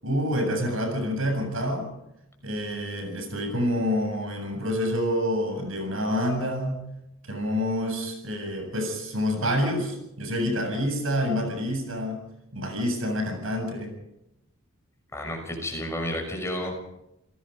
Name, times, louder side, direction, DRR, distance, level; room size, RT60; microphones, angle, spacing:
voice 1, 0.0-1.9 2.4-6.8 7.3-12.2 12.5-13.9, equal, 70° right, 5 dB, 7.9 m, -27 dB
voice 2, 15.1-16.8, left 1 dB, 15° left, 2 dB, 6.1 m, -31 dB
29.5 x 18.5 x 5.4 m, 0.86 s
head